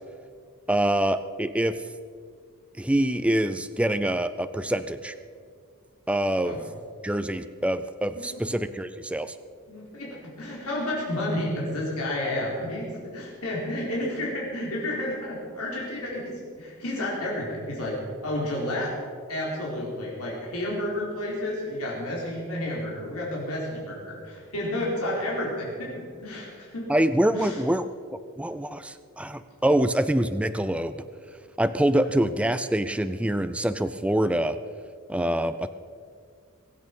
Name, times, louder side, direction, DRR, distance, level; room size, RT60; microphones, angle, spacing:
voice 1, 0.7-1.8 2.8-5.1 6.1-6.6 7.0-9.3 26.9-27.9 28.4-31.0 31.6-34.6 35.1-35.7, right 1 dB, 5° right, 11 dB, 0.4 m, -25 dB
voice 2, 9.7-18.9 19.3-25.9 26.2-26.9 27.3-27.6, left 1 dB, 90° left, -4 dB, 4.4 m, -31 dB
22.5 x 8.5 x 5.5 m, 2.1 s
head